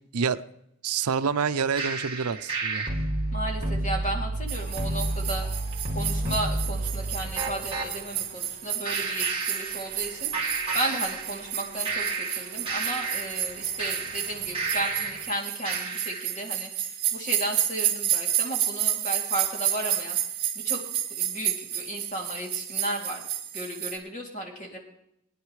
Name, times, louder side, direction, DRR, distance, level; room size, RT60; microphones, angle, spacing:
voice 1, 0.8-2.8, right 6 dB, 90° right, 12 dB, 0.6 m, -27 dB
sound 1, 1.8-7.9 8.8-10.1 10.3-11.5 11.8-15.3 15.6-16.3, right 2 dB, 25° right, 2.2 m, -30 dB
voice 2, 3.3-5.5 5.9-10.3 10.7-20.2 20.5-20.8 21.1-23.3 23.5-24.8, right 1 dB, 35° left, -1 dB, 2.7 m, -34 dB
sound 2, 4.5-15.2, equal, 60° left, 4.3 m, -49 dB
sound 3, 4.5-24.0, right 11 dB, 45° right, 2.1 m, -31 dB
20.5 x 10.0 x 3.2 m, 0.78 s
head